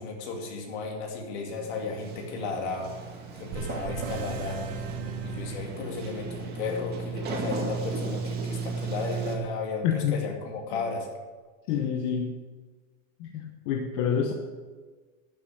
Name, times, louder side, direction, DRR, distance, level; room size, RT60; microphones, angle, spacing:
voice 1, 0.0-2.9 3.4-4.8 5.2-11.1, left 4 dB, 55° left, 2 dB, 2.7 m, -34 dB
Sliding door, 1.5-9.4, right 4 dB, 25° right, 1.8 m, -35 dB
sound 1, 3.5-6.3, right 4 dB, 45° right, 1.6 m, -37 dB
voice 2, 9.8-10.2 11.7-12.3 13.2-14.3, left 8 dB, 40° left, 3 dB, 0.9 m, -27 dB
12.0 x 7.3 x 6.4 m, 1.4 s
supercardioid pair, 155°, 39 cm